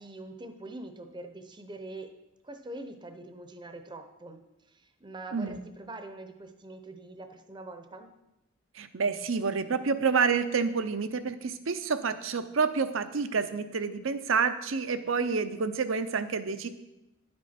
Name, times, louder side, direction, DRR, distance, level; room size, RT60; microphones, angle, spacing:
voice 1, 0.0-2.1 2.4-4.4 4.7-8.1, right 2 dB, 20° right, 7 dB, 0.7 m, -44 dB
voice 2, 8.8-16.7, right 5 dB, 75° right, 10 dB, 0.6 m, -28 dB
10.5 x 7.7 x 4.3 m, 0.94 s
head